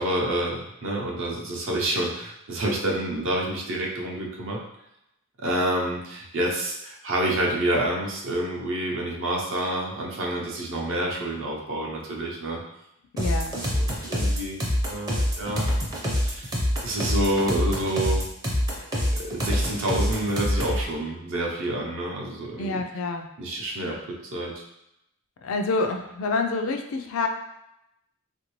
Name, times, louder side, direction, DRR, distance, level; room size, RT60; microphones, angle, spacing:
voice 1, 0.0-4.6 5.4-12.6 13.7-14.6 14.8-15.6 16.1-16.5 16.8-18.2 19.3-22.8 23.4-24.0 24.2-24.6, right 1 dB, 60° right, -2 dB, 0.6 m, -28 dB
voice 2, 13.1-13.6 22.6-23.3 25.4-27.3, left 3 dB, 65° left, 4 dB, 0.4 m, -27 dB
sound 1, 13.2-20.8, equal, 15° right, 0.5 m, -25 dB
3.3 x 2.6 x 3.0 m, 0.84 s
head